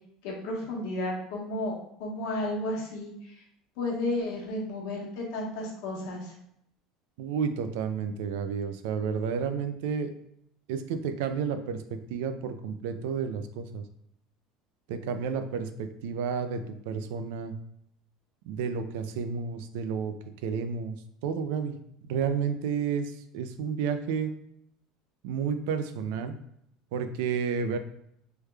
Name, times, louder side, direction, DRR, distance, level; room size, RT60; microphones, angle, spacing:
voice 1, 0.2-3.3 3.8-6.3, left 1 dB, 70° left, -2 dB, 1.1 m, -33 dB
voice 2, 7.2-10.1 10.7-11.8 12.1-13.8 14.9-17.5 18.5-20.1 20.4-21.0 21.2-21.7 22.1-24.3 25.2-26.4 26.9-27.8, right 6 dB, 80° right, 9 dB, 0.3 m, -31 dB
3.3 x 2.2 x 3.2 m, 0.74 s
cardioid pair, 160°, 0 cm